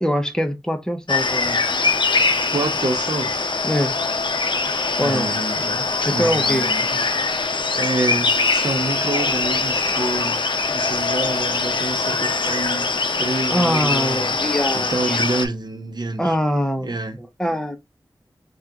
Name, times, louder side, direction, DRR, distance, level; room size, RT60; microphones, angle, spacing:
voice 1, 0.0-1.6 3.6-4.0 5.0-5.3 6.1-6.7 13.5-15.2 16.2-17.8, equal, 10° left, 0.8 m, -23 dB
sound 1, 1.1-15.5, left 3 dB, 65° left, 0.5 m, -22 dB
voice 2, 2.5-3.5 5.0-7.0 7.8-12.9 13.2-14.4 14.7-16.4 16.8-17.2, right 2 dB, 55° right, 0.8 m, -27 dB
3.3 x 2.4 x 2.8 m
wide cardioid pair, 50°, 8 cm